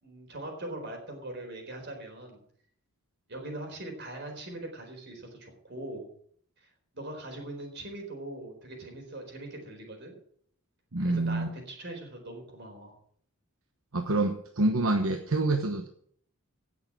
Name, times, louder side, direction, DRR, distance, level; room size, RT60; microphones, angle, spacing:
voice 1, 0.0-2.4 3.3-6.1 6.6-10.2 11.0-13.0, right 1 dB, 50° right, 3 dB, 4.3 m, -41 dB
voice 2, 10.9-11.5 13.9-15.9, right 2 dB, 70° right, 5 dB, 1.1 m, -27 dB
17.5 x 6.8 x 6.1 m, 0.62 s
head